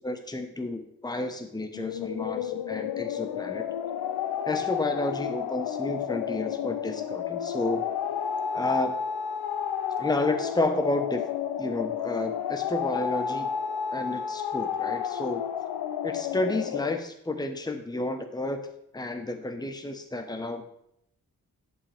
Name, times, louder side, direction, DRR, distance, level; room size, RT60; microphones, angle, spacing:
voice 1, 0.0-3.7 4.4-7.9 8.5-9.0 10.0-11.2 11.6-13.5 13.9-15.4 16.0-18.7 18.9-20.8, left 2 dB, 10° left, 6 dB, 1.0 m, -31 dB
sound 1, 1.7-17.0, left 8 dB, 80° left, 0.5 m, -31 dB
8.5 x 7.6 x 3.5 m, 0.76 s
supercardioid pair, 40°, 38 cm